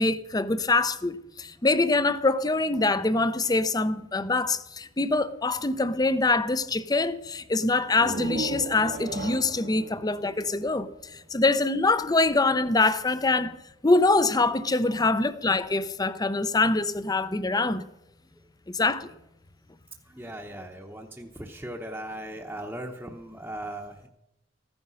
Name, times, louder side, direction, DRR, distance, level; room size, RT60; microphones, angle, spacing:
voice 1, 0.0-13.6 13.8-17.8 18.7-19.1, left 3 dB, 20° left, 0.6 m, -24 dB
sound 1, 7.8-11.5, right 2 dB, 50° right, 1.0 m, -37 dB
voice 2, 20.0-24.1, right 1 dB, 10° right, 0.9 m, -38 dB
15.0 x 9.6 x 6.3 m
head